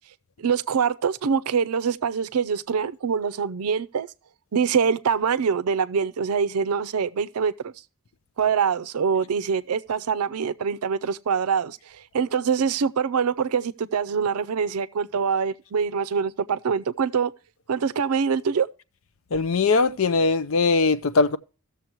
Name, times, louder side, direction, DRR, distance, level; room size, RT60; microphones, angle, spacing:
voice 1, 0.4-4.1 4.5-7.7 8.4-17.3 17.7-18.7, right 6 dB, 90° right, 0.5 m, -24 dB
voice 2, 19.3-21.4, left 4 dB, 65° left, 0.5 m, -20 dB
16.0 x 6.9 x 2.9 m
head